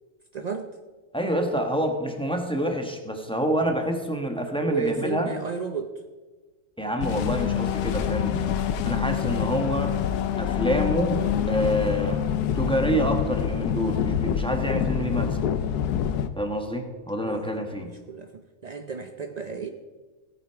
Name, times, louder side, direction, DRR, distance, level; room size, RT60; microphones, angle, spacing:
voice 1, 0.3-0.7 4.6-5.9 17.2-19.7, right 5 dB, 80° right, 6 dB, 0.3 m, -33 dB
voice 2, 1.1-5.3 6.8-8.5 8.8-9.9 10.4-12.2 12.5-15.5 16.4-17.9, equal, 5° left, 4 dB, 1.1 m, -27 dB
sound 1, 7.0-16.3, left 9 dB, 80° left, 1.3 m, -26 dB
16.0 x 8.6 x 4.7 m, 1.3 s
omnidirectional pair, 1.7 m